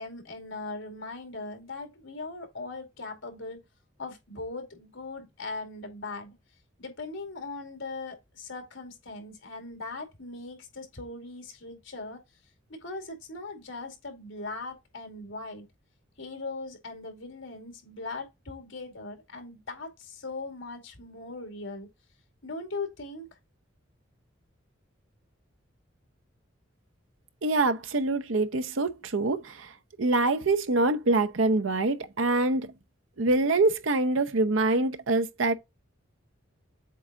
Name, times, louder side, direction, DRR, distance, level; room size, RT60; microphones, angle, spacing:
voice 1, 0.0-3.6 4.0-6.3 6.8-12.2 12.7-15.6 16.2-21.9 22.4-23.3, left 3 dB, 80° left, 2.4 m, -39 dB
voice 2, 27.4-29.7 30.0-32.7 33.2-35.5, right 2 dB, 85° right, 0.8 m, -25 dB
7.7 x 3.6 x 3.8 m
head